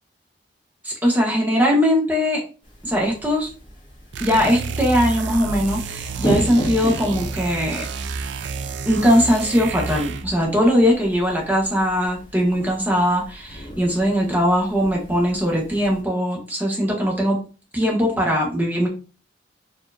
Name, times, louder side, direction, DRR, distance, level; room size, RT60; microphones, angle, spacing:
voice 1, 0.8-2.4 2.8-3.5 4.2-7.8 8.8-17.4 17.7-18.9, equal, 10° right, -2 dB, 1.3 m, -20 dB
sound 1, 2.6-16.0, equal, 30° left, 1.3 m, -35 dB
sound 2, 4.1-10.4, right 4 dB, 80° right, 0.4 m, -30 dB
4.5 x 2.9 x 2.4 m, 0.34 s
head